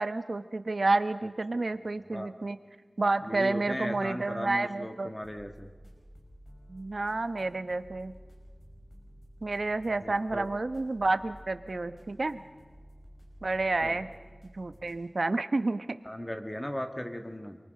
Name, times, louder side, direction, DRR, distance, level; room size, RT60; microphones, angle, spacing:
voice 1, 0.0-2.6 3.0-5.1 6.7-8.1 9.4-12.4 13.4-14.1 14.5-15.9, right 2 dB, 70° right, 11 dB, 0.9 m, -30 dB
voice 2, 3.2-5.7 10.0-10.5 13.8-14.0 16.0-17.6, equal, 20° left, 5 dB, 1.7 m, -37 dB
sound 1, 5.2-15.0, equal, 75° left, 6.0 m, -52 dB
28.0 x 23.5 x 5.3 m, 1.3 s
wide cardioid pair, 60°, 0 cm